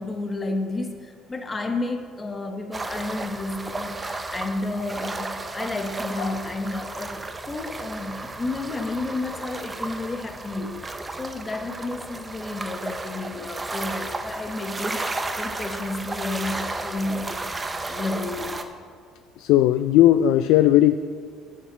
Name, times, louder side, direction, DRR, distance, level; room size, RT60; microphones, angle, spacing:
voice 1, 0.0-7.2 7.5-10.8 11.2-15.0 15.4-17.5 17.9-18.6, left 2 dB, 15° left, 6 dB, 0.8 m, -31 dB
sound 1, 2.7-18.6, right 2 dB, 15° right, 0.5 m, -33 dB
voice 2, 19.4-20.9, left 13 dB, 75° left, 11 dB, 0.3 m, -18 dB
12.5 x 7.4 x 6.0 m, 2.1 s
cardioid pair, 175°, 0 cm